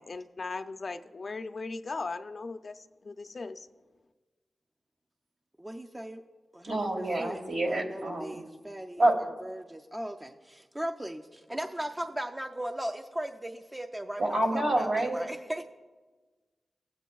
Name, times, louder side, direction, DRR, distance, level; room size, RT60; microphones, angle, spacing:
voice 1, 0.1-3.7, left 3 dB, 50° left, 8 dB, 0.4 m, -38 dB
voice 2, 5.6-6.2 6.5-7.4 7.7-15.6, right 1 dB, 15° right, 5 dB, 0.4 m, -38 dB
voice 3, 6.6-8.4 9.0-9.1 14.2-15.2, right 1 dB, 65° right, 1 dB, 1.5 m, -27 dB
16.5 x 8.0 x 2.3 m, 1.3 s
wide cardioid pair, 80°, 0 cm